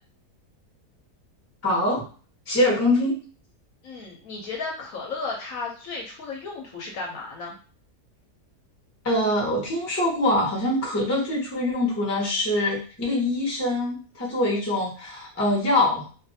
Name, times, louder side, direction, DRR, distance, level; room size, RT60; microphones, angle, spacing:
voice 1, 1.6-2.0 2.5-3.1 9.0-16.0, left 1 dB, 20° left, -3 dB, 0.4 m, -24 dB
voice 2, 3.8-7.5, left 4 dB, 65° left, -1 dB, 0.9 m, -34 dB
2.5 x 2.4 x 2.6 m, 0.39 s
omnidirectional pair, 1.8 m